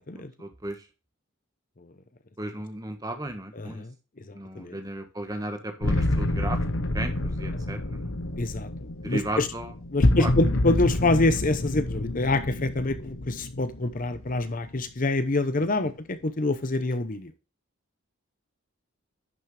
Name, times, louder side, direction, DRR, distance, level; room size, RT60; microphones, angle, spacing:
voice 1, 0.1-0.8 2.4-3.8 4.3-6.6 6.9-8.1 9.0-9.7 10.2-10.3 15.8-15.9, right 1 dB, 15° right, 6 dB, 1.4 m, -35 dB
voice 2, 3.5-3.9 4.3-4.8 8.4-8.7 9.1-9.5 9.9-17.3, left 2 dB, 40° left, 10 dB, 0.8 m, -26 dB
sound 1, 5.8-14.7, left 1 dB, 65° left, 1.0 m, -28 dB
11.0 x 6.2 x 3.3 m, 0.31 s
head